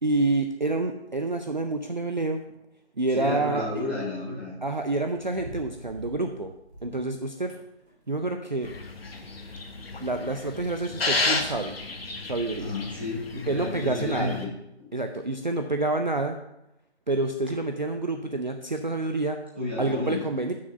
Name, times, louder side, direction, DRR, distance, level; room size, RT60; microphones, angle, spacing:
voice 1, 0.0-2.4 3.0-3.8 4.6-6.5 6.8-7.5 8.1-8.7 10.0-11.8 12.2-12.7 13.5-14.4 14.9-16.4 17.1-19.4 19.8-20.5, right 2 dB, 45° right, 5 dB, 0.5 m, -28 dB
voice 2, 3.1-4.5 12.6-14.5 19.5-20.2, left 2 dB, 10° right, -6 dB, 0.9 m, -31 dB
sound 1, 5.0-7.1 7.5-8.3 8.7-9.6 10.0-10.1 10.8-10.9 11.1-11.5 11.9-12.2 12.7-12.8, right 1 dB, 70° right, 2.7 m, -46 dB
sound 2, 8.6-14.5, left 3 dB, 60° left, 1.2 m, -32 dB
6.3 x 5.9 x 6.8 m, 0.87 s
figure-of-eight pair, 175°, 34 cm